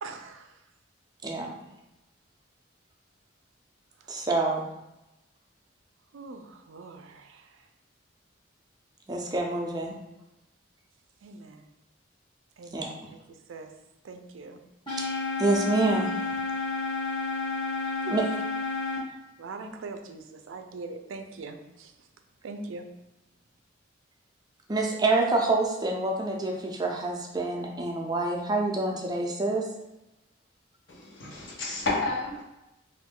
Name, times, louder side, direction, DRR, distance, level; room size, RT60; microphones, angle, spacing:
voice 1, 0.0-0.7 4.0-4.3 6.1-7.7 11.2-11.7 12.6-13.8 14.0-14.6 16.6-17.1 17.8-18.4 19.1-22.1 22.4-22.9, right 3 dB, 85° right, 6 dB, 0.4 m, -43 dB
voice 2, 4.1-4.7 9.1-9.9 12.7-12.9 15.4-16.3 18.1-18.2 24.7-29.7, right 2 dB, 20° right, 0 dB, 0.4 m, -27 dB
sound 1, 14.9-19.0, left 3 dB, 25° left, 0.9 m, -31 dB
voice 3, 30.9-32.4, left 3 dB, 70° left, -4 dB, 0.9 m, -31 dB
3.0 x 2.5 x 3.6 m, 0.95 s
head